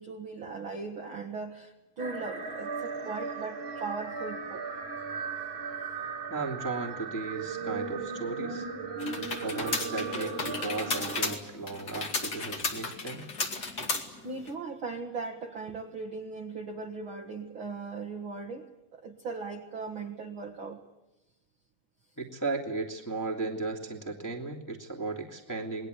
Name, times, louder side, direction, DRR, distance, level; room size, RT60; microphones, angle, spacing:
voice 1, 0.0-4.6 13.9-20.8, right 4 dB, 70° right, 3 dB, 1.2 m, -39 dB
sound 1, 2.0-11.4, right 4 dB, 40° right, 2.0 m, -37 dB
voice 2, 6.3-8.6 9.4-13.3 22.2-25.9, right 3 dB, 5° left, -1 dB, 1.7 m, -35 dB
sound 2, 9.0-14.5, left 3 dB, 30° left, 2.0 m, -34 dB
28.0 x 21.0 x 8.4 m, 0.98 s
omnidirectional pair, 4.9 m